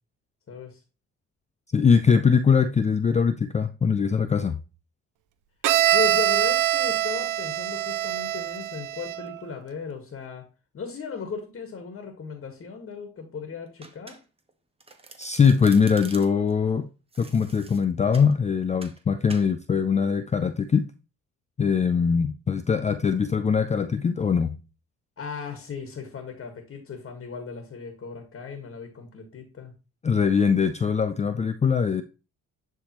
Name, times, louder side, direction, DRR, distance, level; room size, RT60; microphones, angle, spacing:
voice 1, 0.5-0.8 5.9-10.4 10.7-14.2 25.2-29.7, left 5 dB, 45° left, 1.5 m, -36 dB
voice 2, 1.7-4.5 15.2-16.9 17.2-20.9 21.6-24.6 30.0-32.0, left 6 dB, 25° left, 0.4 m, -22 dB
Bowed string instrument, 5.6-9.4, right 13 dB, 85° right, 0.6 m, -24 dB
Domestic sounds home sounds, 13.8-14.5 14.8-16.5 17.1-18.3 18.8-19.0 19.3-19.5, right 3 dB, 20° right, 1.1 m, -46 dB
10.0 x 3.5 x 3.0 m
cardioid pair, 90°, 30 cm